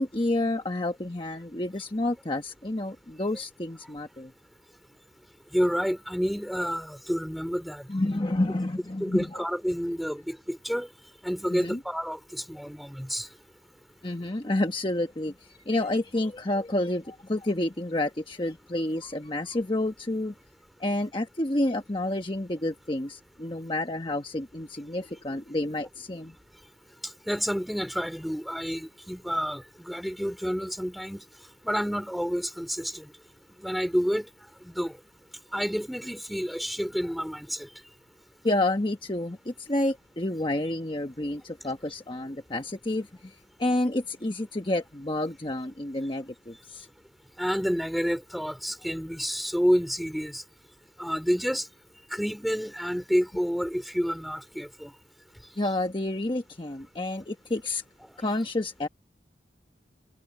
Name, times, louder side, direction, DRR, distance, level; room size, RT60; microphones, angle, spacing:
voice 1, 0.0-4.3 7.9-9.4 11.5-11.8 14.0-20.3 20.8-26.3 38.4-46.9 55.6-57.8 58.2-58.9, left 1 dB, 30° left, 1.2 m, -29 dB
voice 2, 5.5-7.9 9.0-10.9 11.2-13.3 27.0-31.2 31.6-33.1 33.6-34.3 34.6-34.9 35.5-37.7 47.4-50.4 51.0-51.7 52.1-54.9, equal, ahead, 2.6 m, -29 dB
head